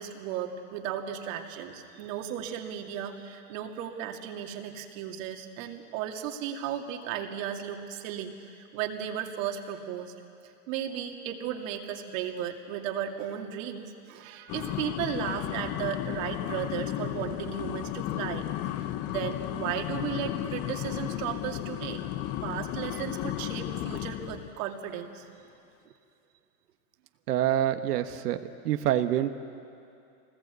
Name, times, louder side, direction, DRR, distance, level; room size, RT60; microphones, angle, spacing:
voice 1, 0.0-10.1 10.4-18.4 18.8-22.0 22.4-25.2, right 9 dB, 55° right, 3 dB, 2.4 m, -35 dB
sound 1, 14.5-24.5, left 13 dB, 30° left, 0.7 m, -34 dB
voice 2, 27.3-28.4 28.6-29.4, right 12 dB, 80° right, 8 dB, 1.3 m, -26 dB
24.5 x 19.5 x 8.2 m, 2.5 s
supercardioid pair, 140°, 46 cm